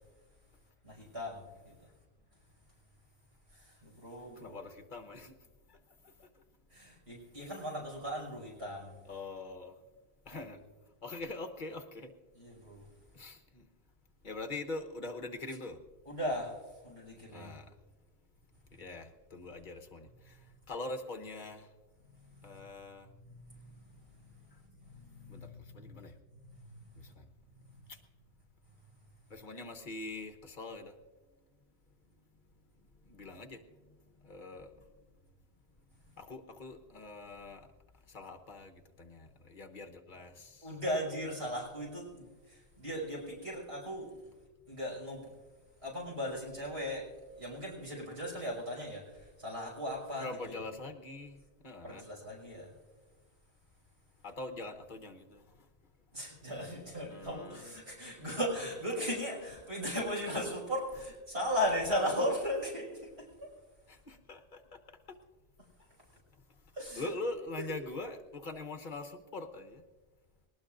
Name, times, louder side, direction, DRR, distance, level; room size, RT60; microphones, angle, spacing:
voice 1, 0.8-1.7 3.5-4.6 6.7-8.9 10.3-10.6 12.3-12.9 16.1-16.5 16.8-17.5 22.1-22.4 23.2-23.9 24.8-25.9 26.6-26.8 40.6-44.1 44.7-45.3 45.8-47.0 47.4-50.6 51.8-52.7 56.1-63.5 66.7-67.1, equal, 85° right, -3 dB, 6.0 m, -37 dB
voice 2, 4.3-5.3 5.7-5.8 6.0-6.3 9.1-9.7 10.3-10.6 11.0-12.1 13.1-13.7 14.2-15.8 17.3-17.7 18.7-20.4 20.7-21.7 22.4-23.1 25.3-26.1 27.0-27.2 27.9-28.0 29.3-30.9 33.0-33.6 33.9-34.8 36.2-37.7 38.1-40.7 50.2-52.0 54.2-55.6 57.1-57.7 63.9-64.6 64.9-65.0 67.0-69.8, left 3 dB, 50° left, 5 dB, 1.3 m, -43 dB
21.5 x 19.0 x 2.6 m, 1.3 s
omnidirectional pair, 1.1 m